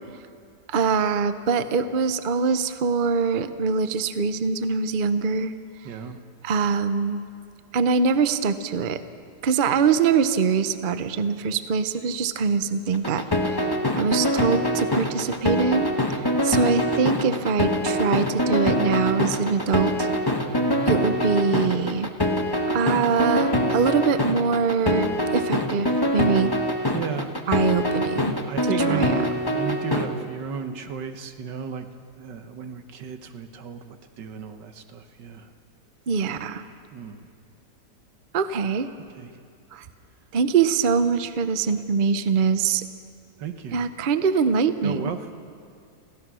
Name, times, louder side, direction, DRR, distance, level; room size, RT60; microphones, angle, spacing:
voice 1, 0.7-5.5 6.4-7.2 7.7-9.0 9.4-13.2 13.5-13.7 13.9-20.1 20.9-22.1 22.7-25.1 25.3-26.5 27.5-28.3 28.6-29.1 36.1-36.6 38.3-38.9 39.7-39.8 40.3-42.8 43.7-45.1, right 5 dB, 45° right, 11 dB, 0.6 m, -23 dB
voice 2, 5.9-6.2 20.5-21.0 26.9-27.3 28.5-31.9 32.2-35.5 36.9-37.3 39.2-39.3 43.4-43.8 44.8-45.3, right 6 dB, 85° right, 7 dB, 1.8 m, -34 dB
sound 1, 12.9-30.0, equal, 15° left, 1.0 m, -24 dB
27.0 x 16.0 x 6.2 m, 2.3 s
omnidirectional pair, 1.8 m